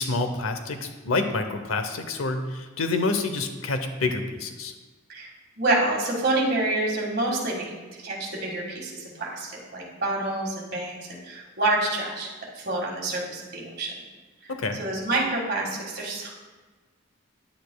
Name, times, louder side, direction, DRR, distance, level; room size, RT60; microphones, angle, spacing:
voice 1, 0.0-4.7 14.5-14.8, left 3 dB, 80° left, 7 dB, 0.7 m, -28 dB
voice 2, 5.6-12.3 12.5-13.9 14.4-16.3, right 2 dB, 50° right, -2 dB, 1.8 m, -28 dB
10.0 x 8.3 x 2.3 m, 1.3 s
head